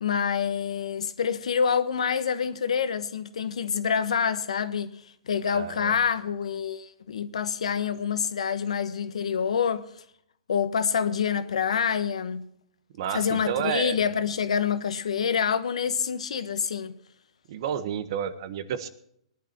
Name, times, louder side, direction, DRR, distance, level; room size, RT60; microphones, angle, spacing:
voice 1, 0.0-4.9 5.3-9.8 10.5-12.5 13.1-16.9, left 7 dB, 85° left, 1.2 m, -27 dB
voice 2, 5.5-5.9 12.9-14.0 17.5-18.9, right 9 dB, 50° right, 1.3 m, -30 dB
19.0 x 11.0 x 4.5 m
hypercardioid pair, 150°, 3 cm